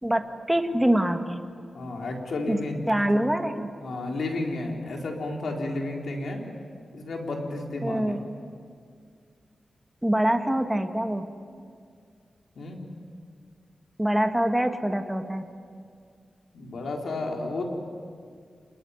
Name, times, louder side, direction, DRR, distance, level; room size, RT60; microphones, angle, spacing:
voice 1, 0.0-1.4 2.5-2.6 2.9-3.7 7.8-8.2 10.0-11.3 14.0-15.5, right 1 dB, 5° right, 5 dB, 1.7 m, -24 dB
voice 2, 1.7-3.2 3.8-6.4 6.9-8.3 12.6-12.8 16.5-17.7, left 2 dB, 80° left, 1 dB, 4.2 m, -32 dB
28.5 x 20.5 x 9.7 m, 2.2 s
wide cardioid pair, 120°, 0 cm